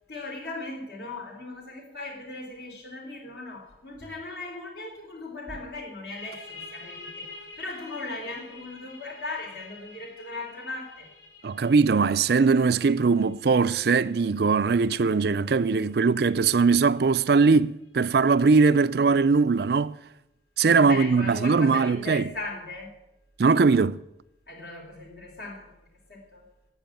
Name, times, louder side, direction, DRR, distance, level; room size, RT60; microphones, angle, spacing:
voice 1, 0.1-7.3 7.6-11.1 20.8-22.9 24.5-26.4, left 2 dB, 60° left, 3.5 m, -38 dB
sound 1, 6.1-17.5, left 3 dB, 80° left, 4.5 m, -48 dB
voice 2, 11.4-20.0 20.6-22.3 23.4-24.0, right 4 dB, 55° right, 0.4 m, -21 dB
12.5 x 8.5 x 8.9 m
head